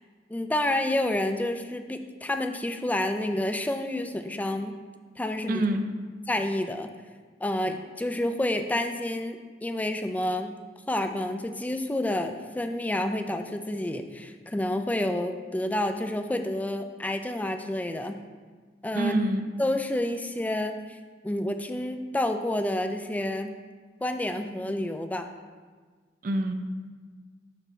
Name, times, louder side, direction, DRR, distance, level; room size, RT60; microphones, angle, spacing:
voice 1, 0.3-4.8 5.2-5.6 6.3-7.0 7.4-10.6 10.9-18.2 18.8-19.2 19.6-21.0 21.2-23.5 24.0-25.3, left 1 dB, 10° left, 7 dB, 0.3 m, -29 dB
voice 2, 5.5-5.8 18.9-19.4 26.2-26.5, right 1 dB, 50° right, 7 dB, 0.5 m, -26 dB
6.6 x 3.1 x 5.5 m, 1.5 s
head